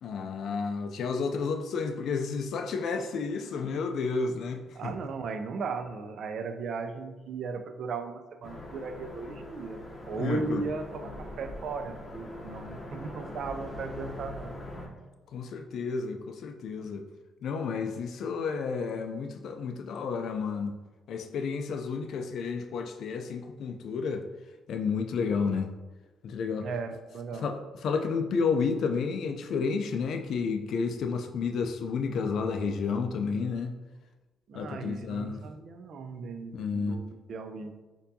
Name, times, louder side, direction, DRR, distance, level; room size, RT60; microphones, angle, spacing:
voice 1, 0.0-4.9 10.2-10.6 15.3-17.0 17.4-20.7 21.1-24.2 24.7-25.7 26.2-26.7 27.4-33.7 34.5-35.4 36.5-37.0, left 5 dB, 70° left, 5 dB, 0.3 m, -31 dB
voice 2, 4.8-14.5 26.6-27.5 34.5-37.7, right 5 dB, 65° right, 8 dB, 0.3 m, -37 dB
sound 1, 8.4-14.9, left 1 dB, 30° left, 0.7 m, -42 dB
4.4 x 2.6 x 2.6 m, 1.2 s
cardioid pair, 90°, 0 cm